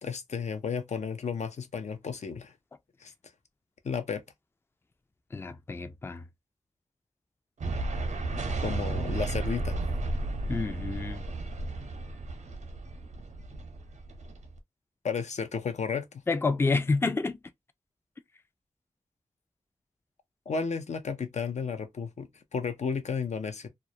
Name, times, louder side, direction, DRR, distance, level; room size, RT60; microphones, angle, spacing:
voice 1, 0.0-2.5 3.0-3.1 3.8-4.2 8.6-9.8 15.0-16.1 20.5-23.7, left 5 dB, 70° left, 0.5 m, -33 dB
voice 2, 5.3-6.2 10.5-11.2 16.3-17.4, left 3 dB, 20° left, 0.3 m, -28 dB
sound 1, 7.6-14.6, right 2 dB, 90° right, 0.6 m, -33 dB
2.2 x 2.0 x 2.7 m
cardioid pair, 40°, 12 cm